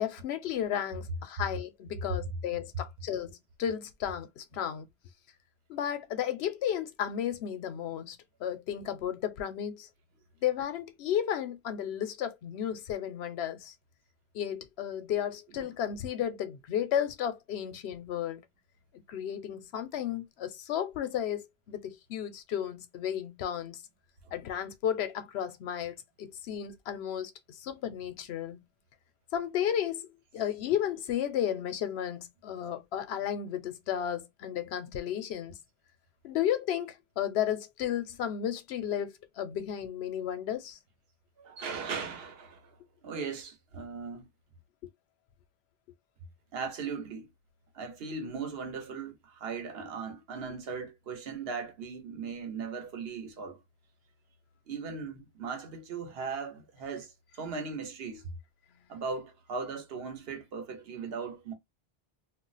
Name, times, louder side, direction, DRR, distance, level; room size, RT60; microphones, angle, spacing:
voice 1, 0.0-4.9 5.7-9.9 10.4-13.7 14.3-18.4 19.1-23.8 24.3-28.6 29.3-30.1 30.3-35.6 36.2-40.8, left 10 dB, 90° left, 0.8 m, -33 dB
voice 2, 41.4-44.3 46.5-47.3 47.7-53.6 54.7-58.3 58.9-61.5, right 5 dB, 70° right, 1.0 m, -38 dB
2.3 x 2.1 x 3.9 m
omnidirectional pair, 1.1 m